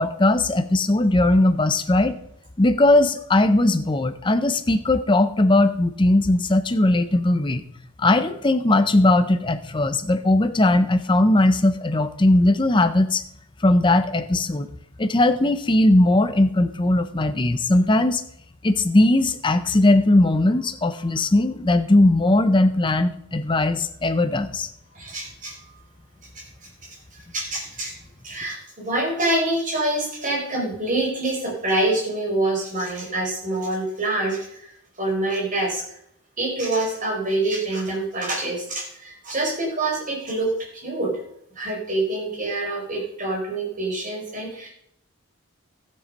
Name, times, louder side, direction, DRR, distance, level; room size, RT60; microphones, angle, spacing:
voice 1, 0.0-2.2 2.6-7.6 8.0-13.2 13.6-14.7 15.0-18.2 18.6-24.7, left 2 dB, 20° left, 9 dB, 0.6 m, -19 dB
voice 2, 24.9-25.5 26.3-27.9 28.2-34.7 35.0-35.8 36.4-41.1 41.5-44.7, right 2 dB, 35° right, -2 dB, 4.5 m, -26 dB
13.0 x 7.6 x 5.3 m, 0.73 s
head